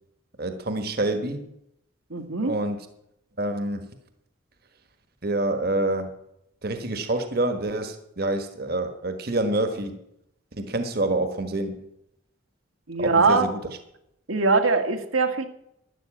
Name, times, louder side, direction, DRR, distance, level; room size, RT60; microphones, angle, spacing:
voice 1, 0.4-1.5 2.4-2.8 3.4-3.9 5.2-6.1 6.6-10.0 10.6-11.8 13.0-13.6, right 2 dB, 50° right, 8 dB, 1.4 m, -27 dB
voice 2, 2.1-2.5 12.9-13.5 14.3-15.5, right 3 dB, 85° right, 5 dB, 1.8 m, -22 dB
12.5 x 11.0 x 8.9 m, 0.80 s
head